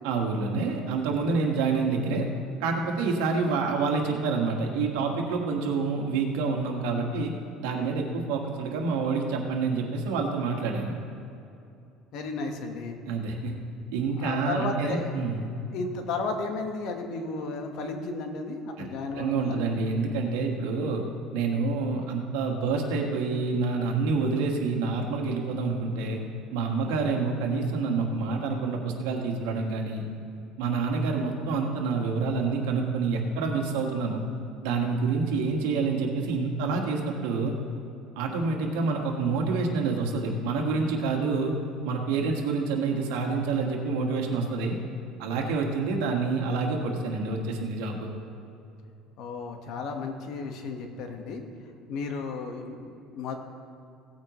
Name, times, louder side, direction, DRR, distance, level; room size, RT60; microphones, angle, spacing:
voice 1, 0.0-2.3 2.6-7.3 7.6-10.9 13.1-13.5 13.9-15.4 19.2-21.0 21.3-26.2 26.5-30.0 30.6-34.2 34.6-37.6 38.2-41.5 41.8-44.8 45.2-48.1, right 4 dB, 90° right, 1 dB, 1.6 m, -27 dB
voice 2, 12.1-13.0 14.2-15.1 15.7-19.6 49.2-51.4 51.9-53.4, left 3 dB, 60° left, 4 dB, 1.4 m, -33 dB
17.5 x 8.9 x 3.1 m, 2.6 s
cardioid pair, 130°, 0 cm